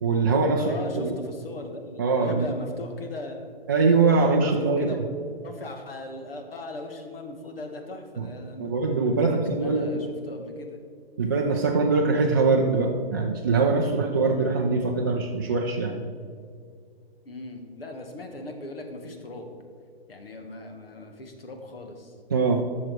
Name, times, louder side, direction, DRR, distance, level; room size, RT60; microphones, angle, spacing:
voice 1, 0.0-1.1 2.0-2.5 3.7-5.0 8.2-8.3 8.6-9.9 11.2-16.0 22.3-22.6, right 4 dB, 20° right, -1 dB, 0.4 m, -23 dB
voice 2, 0.6-3.4 4.1-5.0 5.4-8.7 9.1-10.8 17.2-19.5 20.1-22.1, left 2 dB, 65° left, 4 dB, 1.7 m, -38 dB
12.0 x 6.4 x 4.7 m, 2.2 s
figure-of-eight pair, 135°, 31 cm